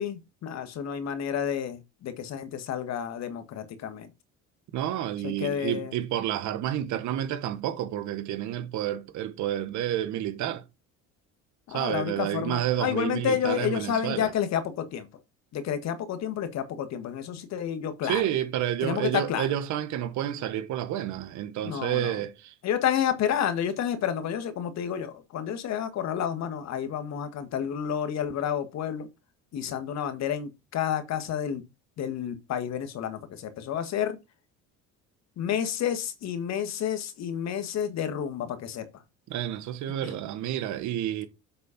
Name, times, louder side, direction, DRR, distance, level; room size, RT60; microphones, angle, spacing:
voice 1, 0.0-4.1 5.2-5.9 11.7-15.1 15.5-18.2 18.8-19.5 21.6-22.2 22.6-29.1 29.5-31.6 32.0-34.2 35.4-38.8 40.0-40.2, left 9 dB, 60° left, 1.6 m, -30 dB
voice 2, 4.7-10.6 11.7-14.3 18.0-22.5 39.3-41.3, right 11 dB, 70° right, 1.4 m, -30 dB
7.6 x 4.2 x 5.8 m
cardioid pair, 105°, 31 cm